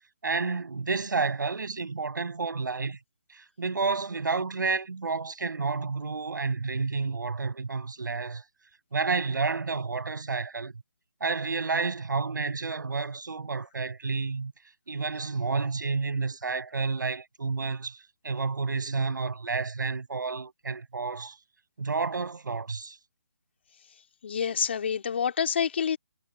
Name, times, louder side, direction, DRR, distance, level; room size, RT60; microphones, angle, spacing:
voice 1, 0.2-3.0 3.3-8.4 8.9-10.8 11.2-14.5 14.9-18.0 18.2-21.4 21.8-23.0, right 4 dB, 65° right, 7.7 m, -30 dB
voice 2, 24.2-26.0, left 7 dB, 35° left, 2.6 m, -27 dB
hypercardioid pair, 175°, 11 cm